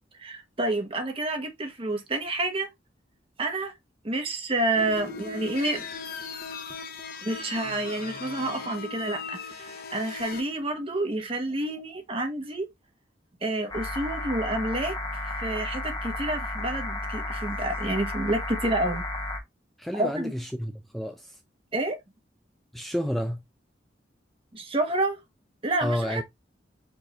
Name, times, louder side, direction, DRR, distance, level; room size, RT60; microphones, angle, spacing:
voice 1, 0.2-2.7 3.4-3.7 4.0-5.9 7.2-12.7 13.4-19.0 19.9-20.3 21.7-22.0 24.5-25.2 25.6-26.2, right 2 dB, 30° right, 1.1 m, -29 dB
sound 1, 4.7-10.4, left 5 dB, 55° left, 0.8 m, -38 dB
sound 2, 13.7-19.4, left 2 dB, 25° left, 0.9 m, -33 dB
voice 2, 19.8-21.4 22.7-23.4 25.8-26.2, equal, ahead, 0.3 m, -30 dB
4.7 x 2.6 x 4.2 m
head